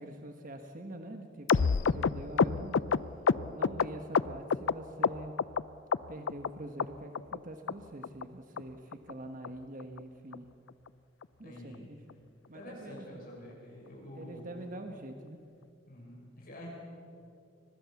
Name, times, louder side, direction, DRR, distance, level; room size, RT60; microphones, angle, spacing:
voice 1, 0.0-2.8 3.5-5.3 6.1-10.5 11.4-12.2 12.5-13.2 14.1-15.4, right 1 dB, 45° right, 5 dB, 1.3 m, -45 dB
sound 1, 1.5-4.7 5.0-5.6 5.9-6.5 6.8-6.9 7.1-7.4 7.7-7.8 8.0-8.2 8.6-8.7 8.9-9.1 9.4-9.5 9.8-10.0 10.3-10.4 10.7-10.9 11.2-11.3, left 5 dB, 75° left, 0.5 m, -28 dB
voice 2, 11.4-11.9 12.5-14.4 15.9-16.7, equal, 50° left, -3 dB, 6.3 m, -48 dB
24.5 x 20.5 x 7.2 m, 2.5 s
head